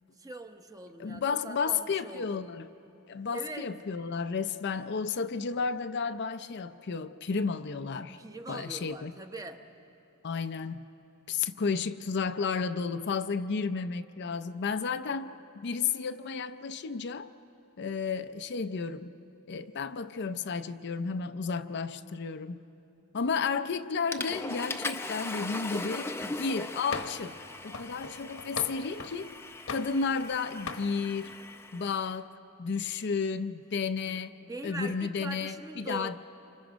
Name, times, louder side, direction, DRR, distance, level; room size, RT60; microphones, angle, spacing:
voice 1, 0.2-2.5 3.3-3.7 8.2-9.6 34.0-34.2 34.4-36.2, right 2 dB, 15° right, 6 dB, 0.9 m, -42 dB
voice 2, 1.0-2.7 3.1-8.2 8.5-9.1 10.2-10.8 11.3-17.3 17.8-19.1 19.5-22.6 23.1-26.1 26.4-29.3 29.7-31.3 31.7-32.3 32.6-34.3 34.6-36.2, left 5 dB, 55° left, 10 dB, 0.5 m, -32 dB
Water / Toilet flush, 23.4-23.7 24.1-32.0, left 2 dB, 10° left, 0.6 m, -39 dB
sound 1, 26.9-27.3 27.7-29.2 29.7-30.4 30.7-30.9, left 4 dB, 70° left, 1.2 m, -39 dB
27.5 x 25.5 x 5.1 m, 2.8 s
head